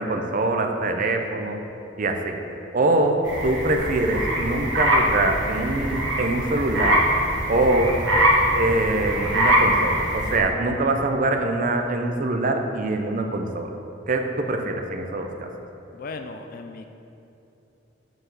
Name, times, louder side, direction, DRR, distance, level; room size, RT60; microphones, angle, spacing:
voice 1, 0.0-1.6 2.0-2.4 2.7-7.1 7.5-8.0 8.5-13.7 14.1-15.3, right 2 dB, 45° right, 4 dB, 0.6 m, -24 dB
sound 1, 3.2-10.4, right 1 dB, 80° right, 1.3 m, -23 dB
voice 2, 15.9-16.9, left 3 dB, 50° left, 6 dB, 0.4 m, -36 dB
6.1 x 4.8 x 6.7 m, 2.9 s
head